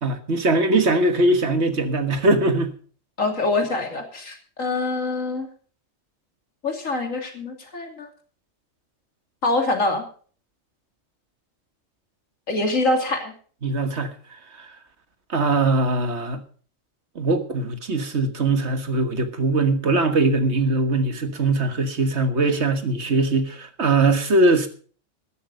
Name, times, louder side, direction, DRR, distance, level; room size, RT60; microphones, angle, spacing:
voice 1, 0.0-2.7 13.6-14.1 15.3-16.4 17.1-24.7, right 2 dB, 60° right, 1.8 m, -21 dB
voice 2, 3.2-5.5 6.6-8.1 9.4-10.0 12.5-13.3, left 2 dB, 80° left, 3.1 m, -24 dB
13.0 x 11.5 x 5.2 m
omnidirectional pair, 1.3 m